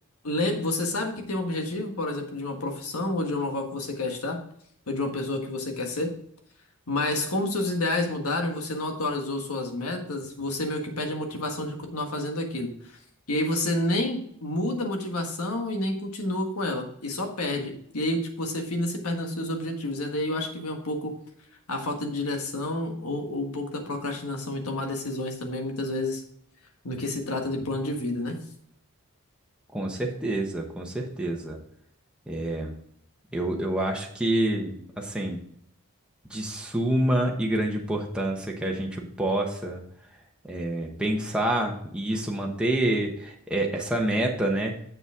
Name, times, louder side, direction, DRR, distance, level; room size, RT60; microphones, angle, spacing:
voice 1, 0.2-4.4 4.9-6.1 6.9-13.0 13.3-21.1 21.7-26.2 26.8-28.4, left 1 dB, 85° left, 3 dB, 1.6 m, -29 dB
voice 2, 29.7-31.6 32.3-32.8 33.3-35.4 36.3-39.8 40.4-44.8, right 1 dB, 5° right, -1 dB, 1.0 m, -27 dB
7.0 x 6.9 x 3.6 m, 0.68 s
head